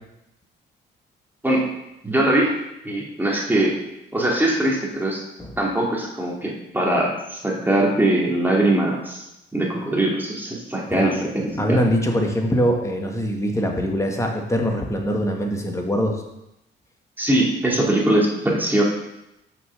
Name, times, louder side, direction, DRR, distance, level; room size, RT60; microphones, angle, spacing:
voice 1, 2.0-2.5 2.8-3.8 4.1-5.2 5.6-9.2 9.5-11.8 17.2-18.8, right 1 dB, 10° right, -3 dB, 2.7 m, -21 dB
voice 2, 11.6-16.2, equal, 15° left, 2 dB, 1.7 m, -23 dB
6.2 x 6.1 x 6.6 m, 0.88 s
cardioid pair, 90°, 20 cm